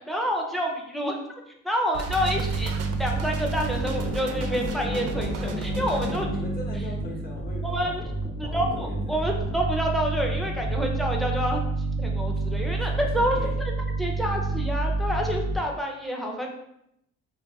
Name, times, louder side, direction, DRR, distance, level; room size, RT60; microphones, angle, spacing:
voice 1, 0.1-1.2 1.6-6.3 7.6-8.1 8.4-11.6 12.0-13.4 14.0-16.5, equal, ahead, 1 dB, 0.5 m, -28 dB
sound 1, 1.9-6.2, right 5 dB, 55° right, 0.4 m, -36 dB
sound 2, 2.1-15.6, right 2 dB, 65° left, 0.9 m, -29 dB
voice 2, 6.2-8.1 8.4-9.3 12.4-12.5 12.9-13.5, left 1 dB, 30° left, -3 dB, 1.0 m, -40 dB
2.4 x 2.2 x 3.9 m, 0.78 s
cardioid pair, 90°, 30 cm